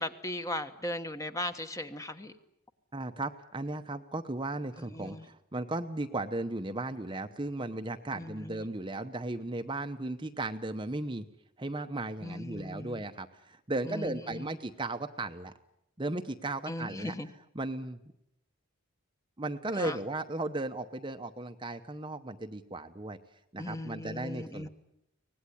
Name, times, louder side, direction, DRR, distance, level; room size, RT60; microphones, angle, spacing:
voice 1, 0.0-2.3 4.9-5.2 8.2-8.6 12.2-13.0 13.8-14.5 16.7-17.3 19.8-20.0 23.6-24.7, left 1 dB, 15° left, 8 dB, 1.3 m, -38 dB
voice 2, 2.9-11.2 11.6-15.5 16.0-17.1 17.5-18.0 19.4-23.2 23.5-24.7, right 2 dB, 20° right, 7 dB, 0.9 m, -36 dB
24.5 x 19.0 x 10.0 m, 0.83 s
head